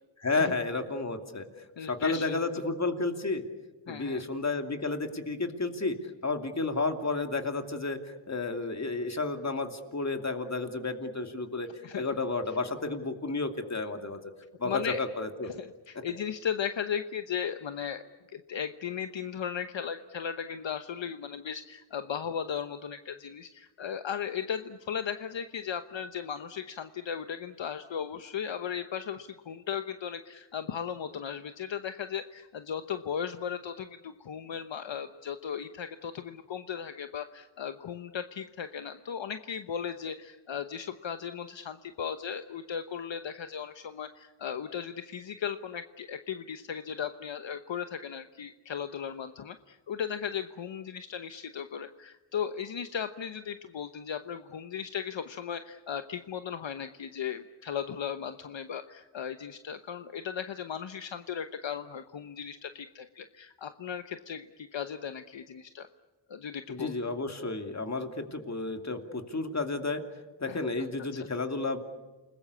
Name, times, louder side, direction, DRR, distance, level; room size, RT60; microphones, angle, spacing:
voice 1, 0.2-1.5 1.8-3.4 3.9-6.0 6.2-11.7 11.9-14.2 14.6-15.5 66.7-70.0 70.4-71.8, left 3 dB, 35° left, 6 dB, 2.8 m, -32 dB
voice 2, 1.8-2.5 3.9-4.2 11.8-12.0 14.6-15.0 15.4-18.0 18.3-65.9 66.3-66.9 70.5-70.6 71.0-71.1, left 8 dB, 65° left, 9 dB, 1.1 m, -36 dB
29.0 x 20.0 x 8.4 m, 1.2 s
wide cardioid pair, 85°, 48 cm